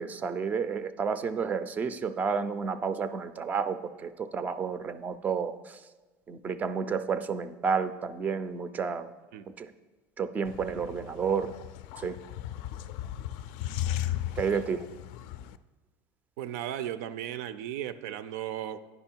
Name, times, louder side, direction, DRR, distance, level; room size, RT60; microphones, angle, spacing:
voice 1, 0.0-5.8 6.3-9.1 9.6-9.7 10.2-11.5 12.0-12.1 14.4-14.8, right 6 dB, 20° right, 12 dB, 0.4 m, -31 dB
sound 1, 10.4-15.6, left 12 dB, 65° left, 0.3 m, -36 dB
voice 2, 16.4-18.8, right 11 dB, 90° right, 14 dB, 0.5 m, -35 dB
9.6 x 5.5 x 4.5 m, 1.3 s
cardioid pair, 160°, 8 cm